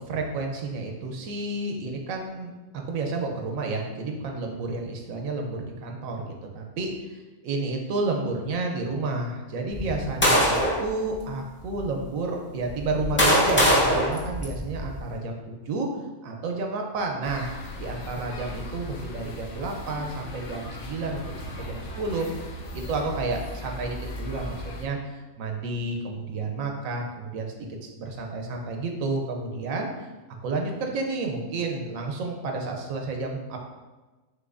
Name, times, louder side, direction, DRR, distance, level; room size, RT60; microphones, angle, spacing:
voice 1, 0.1-2.5 2.8-15.9 16.2-21.2 21.6-22.3 22.7-27.5 28.0-29.9 30.3-33.6, right 3 dB, 85° right, 2 dB, 1.1 m, -31 dB
sound 1, 9.7-10.9 11.6-11.8 12.7-15.0, equal, 10° left, 0.6 m, -22 dB
sound 2, 17.2-24.9, left 1 dB, 65° left, 0.9 m, -38 dB
6.0 x 2.8 x 2.5 m, 1.2 s
omnidirectional pair, 1.4 m